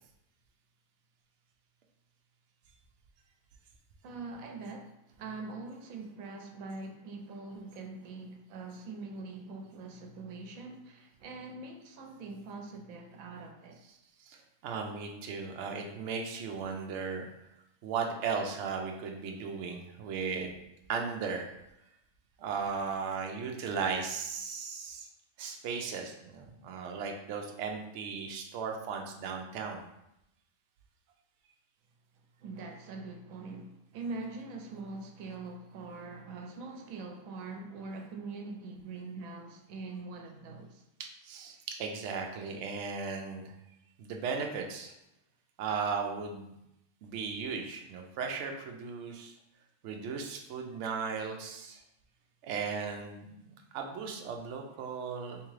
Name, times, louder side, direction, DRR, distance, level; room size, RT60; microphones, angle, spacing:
voice 1, 4.0-13.8 32.4-40.8, right 3 dB, 90° right, 3 dB, 1.0 m, -43 dB
voice 2, 14.2-17.3 17.8-20.6 20.9-21.5 22.4-25.1 25.4-29.8 41.0-43.5 44.0-44.9 45.6-46.6 47.0-49.3 49.8-51.8 52.4-55.4, right 5 dB, 70° right, 2 dB, 0.8 m, -36 dB
3.5 x 3.2 x 3.1 m, 0.85 s
omnidirectional pair, 1.4 m